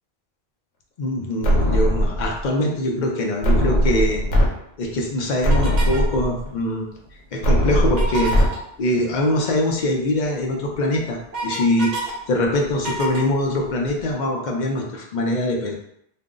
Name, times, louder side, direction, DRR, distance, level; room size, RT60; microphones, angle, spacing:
voice 1, 1.0-4.2 4.8-6.9 7.3-8.3 8.8-11.9 12.3-15.7, left 1 dB, 55° left, 0 dB, 0.6 m, -23 dB
sound 1, 1.4-2.4 3.4-4.5 4.9-5.0 5.4-6.4 7.4-8.5, equal, 75° left, 0.9 m, -19 dB
sound 2, 5.5-6.1 7.9-8.6 10.2-10.3 10.7-12.1 12.4-14.0, right 1 dB, 50° right, 0.8 m, -30 dB
2.5 x 2.0 x 3.6 m, 0.74 s
omnidirectional pair, 1.1 m